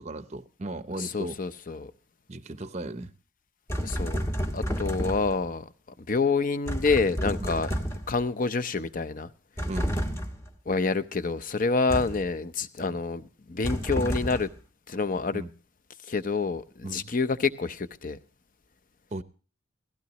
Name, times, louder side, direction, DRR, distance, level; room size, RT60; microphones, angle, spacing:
voice 1, 0.0-1.4 2.3-3.1 4.6-4.8 9.7-10.0 12.8-13.0 15.3-15.5 16.8-17.1 19.1-19.2, right 2 dB, 30° right, 0.6 m, -36 dB
voice 2, 1.0-1.9 3.8-4.2 4.5-5.6 6.1-7.7 8.1-9.3 10.7-13.2 13.5-14.5 14.9-15.4 16.1-18.2, left 4 dB, 40° left, 0.7 m, -27 dB
sound 1, 3.7-5.5 6.7-8.2 9.6-10.5 11.9-12.3 13.6-14.6, equal, 15° left, 1.0 m, -30 dB
17.0 x 15.5 x 3.0 m
head